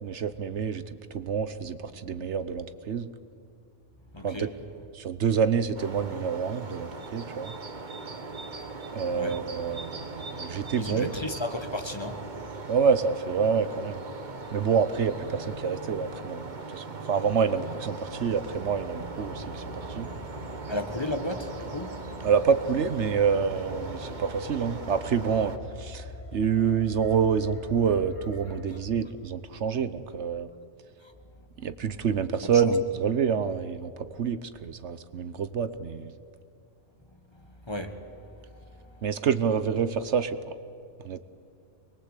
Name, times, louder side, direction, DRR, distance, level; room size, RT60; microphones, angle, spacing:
voice 1, 0.0-0.8 1.1-3.1 4.2-4.5 4.9-7.5 8.9-11.1 12.7-14.0 14.5-20.1 22.2-26.1 26.3-30.5 31.6-36.1 39.0-40.4 41.0-41.2, right 6 dB, 65° right, 12 dB, 1.2 m, -27 dB
voice 2, 4.1-4.6 9.1-9.4 10.8-12.3 20.7-22.0 28.7-28.8 32.4-32.7 37.6-38.4 38.7-39.1, left 1 dB, 20° left, 6 dB, 1.5 m, -34 dB
sound 1, 5.7-25.6, right 3 dB, 40° right, 1.4 m, -40 dB
sound 2, 18.1-28.6, left 2 dB, 85° left, 3.4 m, -44 dB
24.5 x 21.5 x 8.3 m, 2.4 s
omnidirectional pair, 1.3 m